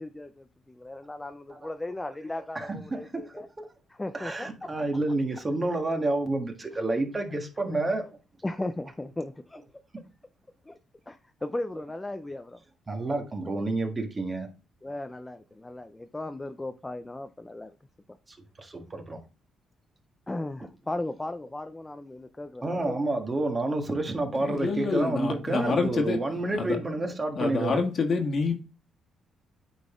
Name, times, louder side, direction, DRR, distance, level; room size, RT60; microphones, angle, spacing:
voice 1, 0.0-3.5 3.9-4.7 7.7-7.8 8.4-9.6 10.6-10.8 11.1-12.6 14.8-17.7 20.3-23.0, left 2 dB, 15° left, 0.5 m, -36 dB
voice 2, 2.5-3.7 4.1-8.0 12.9-14.5 18.6-19.2 22.6-27.8, right 2 dB, 25° right, 1.6 m, -29 dB
voice 3, 24.3-26.2 26.5-26.8 27.4-28.6, left 4 dB, 50° left, 1.6 m, -27 dB
8.8 x 4.0 x 3.6 m
cardioid pair, 90°, 0 cm